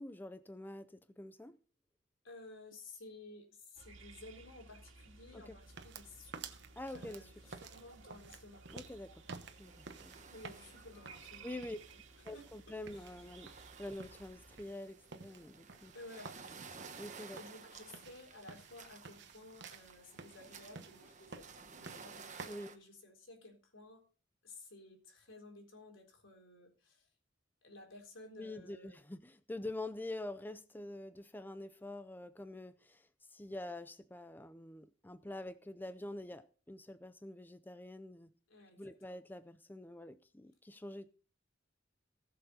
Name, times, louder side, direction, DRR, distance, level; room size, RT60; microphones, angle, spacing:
voice 1, 0.0-1.6 5.3-5.6 6.8-7.3 8.7-9.2 9.6-10.2 11.4-11.8 12.2-15.9 17.0-17.4 22.5-22.7 28.4-38.3 38.8-41.1, left 1 dB, 10° left, 0.5 m, -46 dB
voice 2, 2.2-6.7 6.9-8.7 10.2-11.8 12.3-13.4 15.9-16.9 17.4-24.1 24.4-27.1 27.6-29.0 38.5-39.2, left 2 dB, 80° left, 3.8 m, -55 dB
sound 1, 3.8-14.7, right 3 dB, 80° right, 2.1 m, -58 dB
sound 2, 5.6-22.5, right 4 dB, 65° right, 1.1 m, -54 dB
sound 3, 6.8-7.2 7.5-8.0 8.4-8.5 9.2-22.8, right 5 dB, 40° right, 1.2 m, -55 dB
18.5 x 6.8 x 4.0 m
head